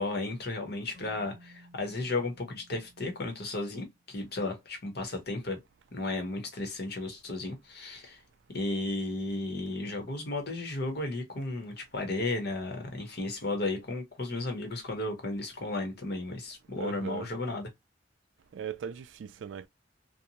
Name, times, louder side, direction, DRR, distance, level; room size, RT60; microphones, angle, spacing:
voice 1, 0.0-5.6 5.9-8.2 8.5-17.7, left 2 dB, 55° left, 0.9 m, -34 dB
Keyboard (musical), 0.9-4.2, right 1 dB, 30° left, 0.9 m, -58 dB
voice 2, 16.8-17.3 18.5-19.7, right 7 dB, 75° right, 0.3 m, -38 dB
2.7 x 2.1 x 2.8 m
head